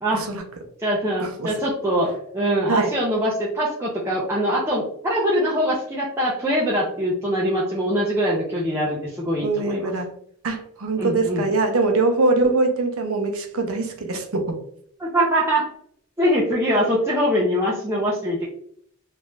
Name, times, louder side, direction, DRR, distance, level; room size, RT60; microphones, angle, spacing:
voice 1, 0.1-0.4 1.2-1.5 2.7-2.9 9.4-10.1 10.4-14.6, right 3 dB, 70° right, 4 dB, 0.6 m, -23 dB
voice 2, 0.8-9.9 11.0-11.5 15.0-15.7 16.2-18.5, equal, 10° right, -6 dB, 0.5 m, -23 dB
3.1 x 2.5 x 3.2 m, 0.66 s
head